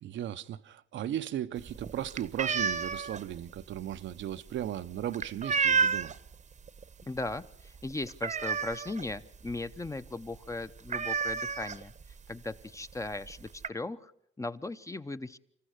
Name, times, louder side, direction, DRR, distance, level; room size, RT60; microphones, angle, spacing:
voice 1, 0.0-6.1, right 11 dB, 70° right, 0.8 m, -36 dB
sound 1, 1.6-6.3 6.7-7.0 7.3-7.4 7.7-9.1 9.5-9.6 9.9-10.1 10.3-10.4 10.9-12.1 12.9-13.0 13.3-13.7, right 5 dB, 35° right, 0.9 m, -31 dB
voice 2, 7.0-11.9 12.3-14.1 14.4-15.4, left 2 dB, 15° left, 0.8 m, -38 dB
26.5 x 14.5 x 8.0 m
cardioid pair, 90°, 20 cm